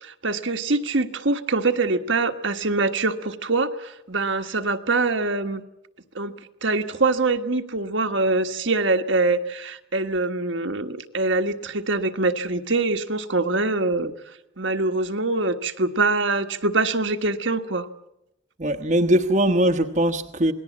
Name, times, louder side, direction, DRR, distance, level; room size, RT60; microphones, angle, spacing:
voice 1, 0.0-5.6 6.1-14.1 14.6-17.9, right 3 dB, 60° right, 1.5 m, -24 dB
voice 2, 18.6-20.5, right 1 dB, 35° right, 1.2 m, -20 dB
28.0 x 19.5 x 7.4 m
head